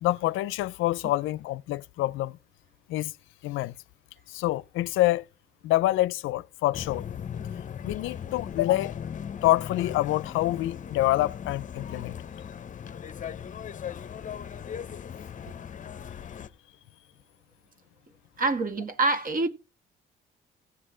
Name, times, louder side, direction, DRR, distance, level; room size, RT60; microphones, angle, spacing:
voice 1, 0.0-2.4 2.9-3.1 3.4-3.7 4.3-5.3 5.6-7.1 7.8-9.0 9.4-12.2, left 16 dB, 90° left, 0.4 m, -26 dB
sound 1, 6.7-16.5, left 8 dB, 40° left, 0.7 m, -38 dB
voice 2, 18.4-19.5, right 3 dB, 45° right, 1.8 m, -25 dB
15.5 x 7.5 x 3.8 m
cardioid pair, 90°, 20 cm